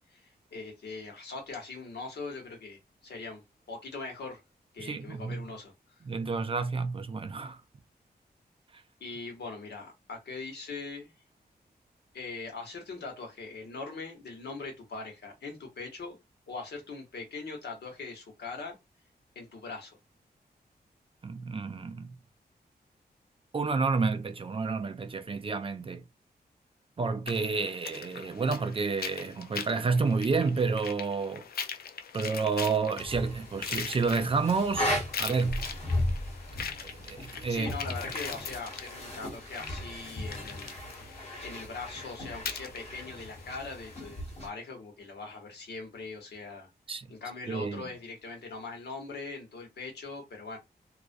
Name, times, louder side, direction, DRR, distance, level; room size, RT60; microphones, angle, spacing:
voice 1, 0.1-4.4 4.7-5.7 9.0-11.1 12.1-16.2 16.5-18.8 19.3-20.0 37.5-40.7 41.0-46.7 47.1-50.6, left 4 dB, 90° left, 0.9 m, -41 dB
voice 2, 4.8-5.4 6.1-7.6 21.2-22.2 23.5-26.0 27.0-31.5 32.1-35.7 36.8-37.7 46.9-47.1 47.5-47.9, right 4 dB, 35° right, 0.3 m, -30 dB
sound 1, 27.3-44.0, left 7 dB, 65° left, 0.4 m, -42 dB
sound 2, 33.0-44.5, left 1 dB, 40° left, 1.2 m, -36 dB
2.3 x 2.1 x 2.5 m
wide cardioid pair, 95°, 17 cm